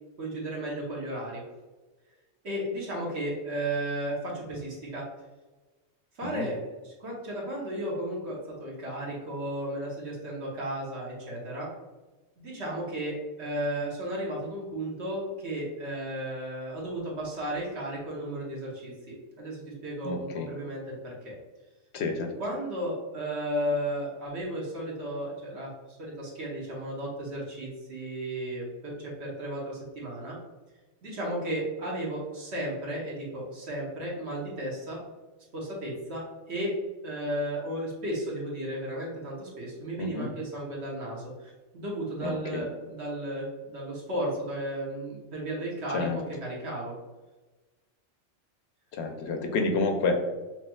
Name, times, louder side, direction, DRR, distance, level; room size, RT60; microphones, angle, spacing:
voice 1, 0.2-1.4 2.4-5.0 6.1-11.7 12.4-21.3 22.4-30.4 31.0-35.0 35.5-36.7 37.0-46.1 46.4-46.9, right 1 dB, 65° right, -4 dB, 1.3 m, -34 dB
voice 2, 20.0-20.5 21.9-22.3 40.0-40.3 42.2-42.7 45.9-46.2 48.9-50.2, left 3 dB, 70° left, 4 dB, 0.8 m, -29 dB
5.5 x 2.9 x 2.3 m, 1.2 s
omnidirectional pair, 1.2 m